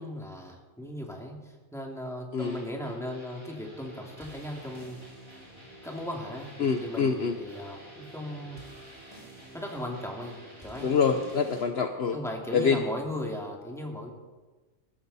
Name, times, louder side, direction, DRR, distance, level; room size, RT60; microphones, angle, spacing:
voice 1, 0.0-5.0 5.8-8.6 9.5-10.9 12.1-14.1, left 1 dB, ahead, 0 dB, 2.6 m, -37 dB
sound 1, 2.4-11.6, right 1 dB, 20° right, 5.6 m, -49 dB
voice 2, 6.6-7.3 10.8-12.2 12.5-12.8, left 6 dB, 60° left, 6 dB, 1.1 m, -25 dB
21.0 x 14.0 x 4.2 m, 1.3 s
omnidirectional pair, 1.3 m